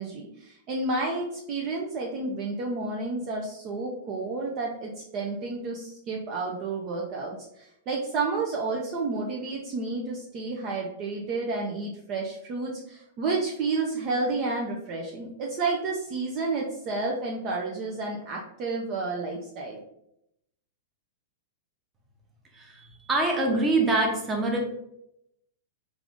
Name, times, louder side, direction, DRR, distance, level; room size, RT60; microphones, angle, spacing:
voice 1, 0.0-19.8, right 3 dB, 40° right, -1 dB, 0.6 m, -31 dB
voice 2, 22.5-24.6, right 2 dB, 20° right, 0 dB, 1.0 m, -25 dB
3.4 x 2.5 x 3.5 m, 0.79 s
hypercardioid pair, 120°, 0 cm